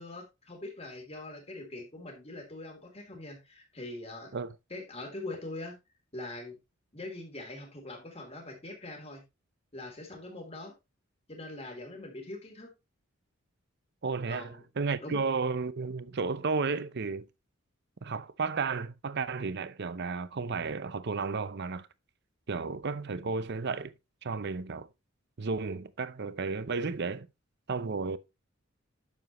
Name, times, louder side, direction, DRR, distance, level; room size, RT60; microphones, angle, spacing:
voice 1, 0.0-4.3 4.7-5.8 6.1-6.6 6.9-9.2 9.7-10.7 11.3-12.7 14.3-14.6 15.0-15.2, left 2 dB, 30° left, 3.3 m, -42 dB
voice 2, 14.0-17.3 18.0-21.9 22.5-23.9 24.2-24.9 25.4-27.3 27.7-28.2, right 4 dB, 55° right, 0.7 m, -33 dB
10.5 x 7.5 x 3.1 m
head